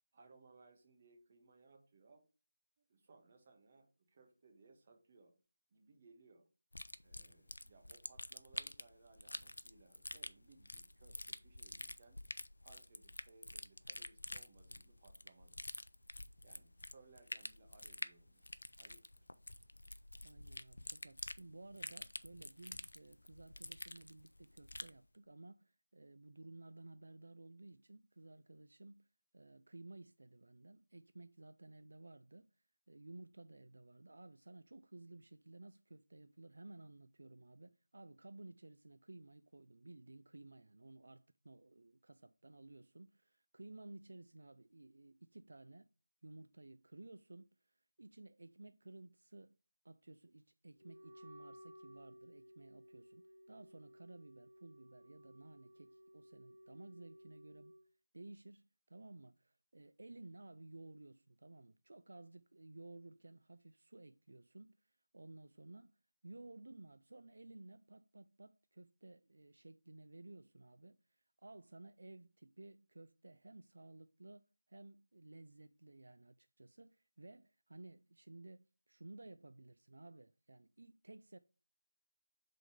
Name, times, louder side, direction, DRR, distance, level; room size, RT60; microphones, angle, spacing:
voice 1, 0.1-2.2 2.8-5.3 5.7-6.5 7.0-12.2 12.6-15.7 16.4-19.3, right 3 dB, 30° right, 1.4 m, -65 dB
sound 1, 6.7-25.0, left 1 dB, 80° left, 0.5 m, -48 dB
voice 2, 20.2-45.9 46.2-49.6 49.8-57.7 58.1-81.4, right 2 dB, 65° right, 0.3 m, -56 dB
Wind instrument woodwind instrument, 50.8-57.8, equal, 20° left, 2.2 m, -59 dB
5.0 x 3.8 x 5.0 m
figure-of-eight pair, 170°, 0 cm